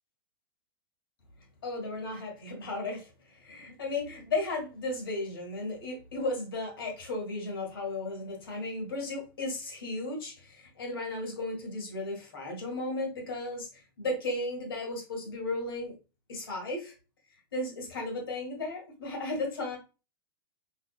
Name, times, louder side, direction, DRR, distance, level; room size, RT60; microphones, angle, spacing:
voice 1, 1.6-13.7 14.0-15.9 16.3-16.9 17.5-19.8, left 2 dB, 85° left, 0 dB, 2.1 m, -35 dB
3.7 x 3.5 x 2.4 m, 0.31 s
hypercardioid pair, 130°, 12 cm